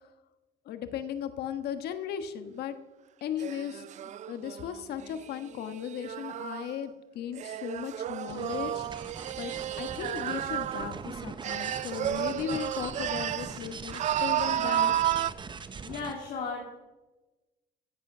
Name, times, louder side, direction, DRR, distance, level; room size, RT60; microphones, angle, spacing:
voice 1, 0.7-2.8 3.2-3.8 4.3-8.8 9.4-14.9, left 9 dB, 75° left, 9 dB, 1.4 m, -36 dB
sound 1, 3.4-6.8 7.4-11.0 11.4-13.6 13.9-15.3, right 11 dB, 45° right, 0.4 m, -32 dB
sound 2, 8.3-16.2, right 5 dB, 30° right, 0.8 m, -42 dB
voice 2, 14.5-14.9 15.8-16.8, left 4 dB, 55° left, 0 dB, 2.4 m, -36 dB
15.5 x 8.3 x 6.1 m, 1.1 s
cardioid pair, 110°, 17 cm